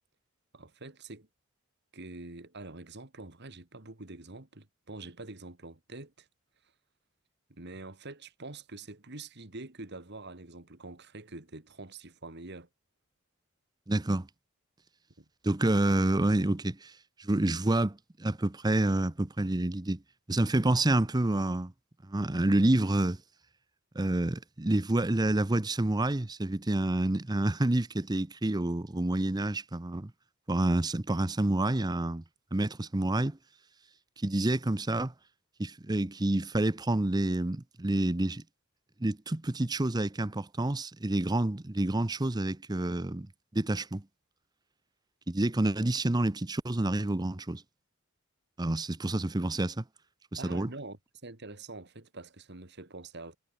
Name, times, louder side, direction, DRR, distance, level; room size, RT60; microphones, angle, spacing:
voice 1, 0.5-1.3 1.9-6.3 7.5-12.7 15.2-15.3 50.4-53.4, right 2 dB, 55° right, 2.3 m, -45 dB
voice 2, 13.9-14.3 15.4-16.9 17.2-20.0 20.3-21.7 22.1-23.2 23.9-30.1 30.5-32.2 32.5-33.4 34.2-35.1 35.6-38.4 39.0-43.3 43.5-44.0 45.3-47.6 48.6-49.8 50.3-50.7, right 1 dB, 20° right, 0.7 m, -28 dB
head